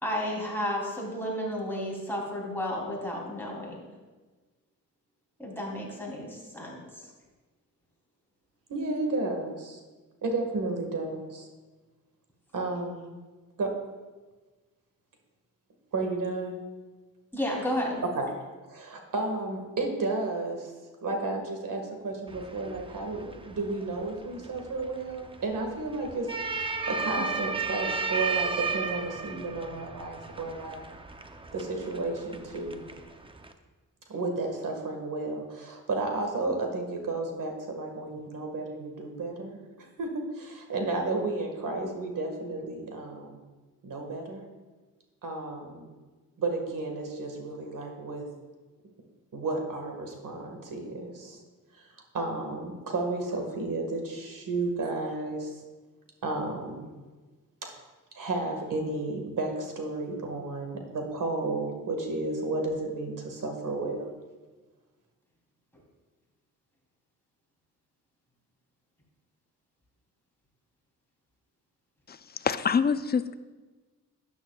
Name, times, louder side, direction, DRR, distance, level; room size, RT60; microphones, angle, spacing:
voice 1, 0.0-3.8 5.4-7.1 17.3-18.0, left 1 dB, 5° left, -3 dB, 3.2 m, -32 dB
voice 2, 8.7-9.8 10.2-11.5 12.5-13.1 13.6-13.7 15.9-16.5 18.0-18.3 18.7-20.7 21.0-30.8 31.5-32.8 34.1-43.4 43.8-44.4 45.2-45.9 46.4-48.3 49.3-51.4 51.7-55.6 56.2-56.9 57.6-57.7 58.1-64.1, right 2 dB, 70° right, 3 dB, 1.8 m, -32 dB
sound 1, 22.3-33.5, right 4 dB, 15° right, 0.7 m, -35 dB
voice 3, 72.1-73.3, left 6 dB, 30° left, 13 dB, 0.4 m, -26 dB
12.5 x 9.7 x 2.4 m, 1.3 s
cardioid pair, 85°, 34 cm